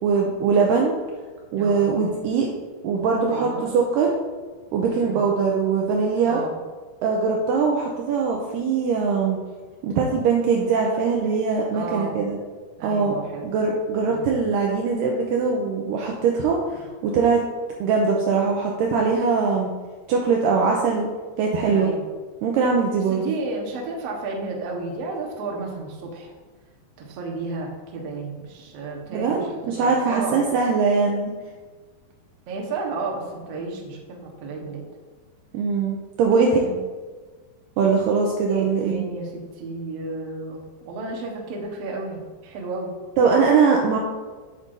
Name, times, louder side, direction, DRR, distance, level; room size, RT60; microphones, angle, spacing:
voice 1, 0.0-0.9 1.5-2.5 2.8-4.1 4.7-6.4 7.0-9.4 9.8-12.4 12.8-13.1 13.4-17.4 17.8-19.7 20.1-21.1 21.4-21.9 22.4-23.3 29.1-31.3 35.5-36.6 37.8-39.1 43.2-44.0, right 5 dB, 85° right, 0 dB, 2.0 m, -21 dB
voice 2, 1.6-1.9 3.3-3.7 4.9-5.2 6.2-6.5 11.7-12.1 12.8-13.5 14.1-14.3 21.7-22.1 23.1-26.3 27.0-30.4 32.5-34.8 36.3-36.8 38.5-40.6 40.9-42.9, right 3 dB, 65° right, -1 dB, 1.6 m, -32 dB
8.1 x 7.5 x 2.6 m, 1.4 s
omnidirectional pair, 4.6 m